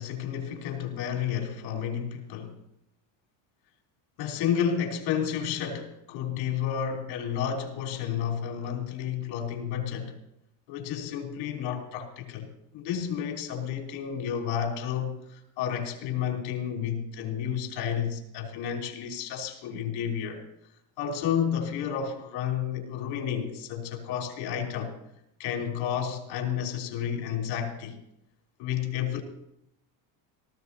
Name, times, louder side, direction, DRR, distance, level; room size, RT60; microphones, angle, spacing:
voice 1, 0.0-2.6 4.2-10.2 10.7-20.4 21.0-24.9 25.4-28.0 28.6-29.2, left 8 dB, 80° left, 3.6 m, -31 dB
17.5 x 14.5 x 4.1 m
cardioid pair, 125°, 48 cm